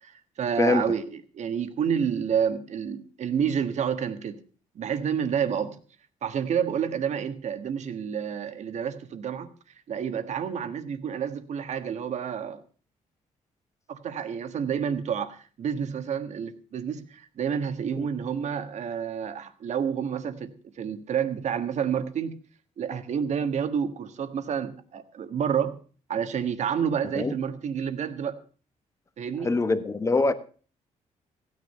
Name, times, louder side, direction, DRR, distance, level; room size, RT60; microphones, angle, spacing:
voice 1, 0.0-4.4 4.7-5.8 6.2-9.5 9.9-12.6 13.9-22.4 22.8-25.8 26.1-28.4 29.2-29.5, right 7 dB, 60° right, 1.5 m, -29 dB
voice 2, 0.6-0.9 18.0-18.1 27.1-27.3 29.4-30.3, left 3 dB, 20° left, 1.2 m, -24 dB
15.5 x 9.8 x 5.5 m
cardioid pair, 110°, 13 cm